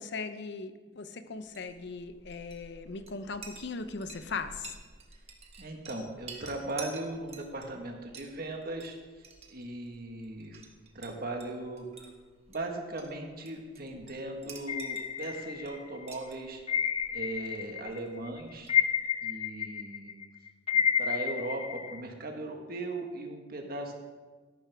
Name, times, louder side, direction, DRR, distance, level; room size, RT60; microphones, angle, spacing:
voice 1, 0.0-4.8, left 4 dB, 60° left, 10 dB, 0.7 m, -39 dB
Chink clink, 1.4-19.2, right 4 dB, 35° right, 1.5 m, -52 dB
voice 2, 5.6-10.6 10.9-12.1 12.5-16.6 17.1-18.7 19.2-20.1 20.7-23.9, right 2 dB, 50° right, 3 dB, 1.6 m, -38 dB
sound 1, 14.7-16.0 16.7-18.0 18.3-22.0, left 7 dB, 30° left, 0.4 m, -30 dB
13.0 x 11.5 x 3.6 m, 1.4 s
head